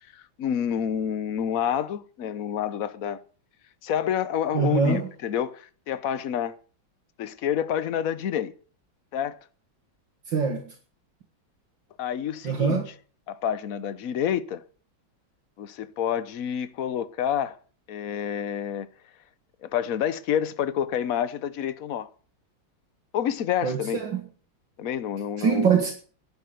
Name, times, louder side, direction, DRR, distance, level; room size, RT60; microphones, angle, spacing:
voice 1, 0.0-3.2 3.8-6.5 7.2-8.5 9.1-9.4 12.0-12.8 13.3-14.6 15.6-17.6 17.9-18.9 19.6-22.1 23.1-24.0 24.8-25.8, left 9 dB, 55° left, 1.2 m, -28 dB
voice 2, 4.5-5.1 10.3-10.7 12.4-12.9 23.6-24.2 25.4-25.9, right 6 dB, 70° right, 2.5 m, -23 dB
11.5 x 11.0 x 7.8 m
omnidirectional pair, 2.1 m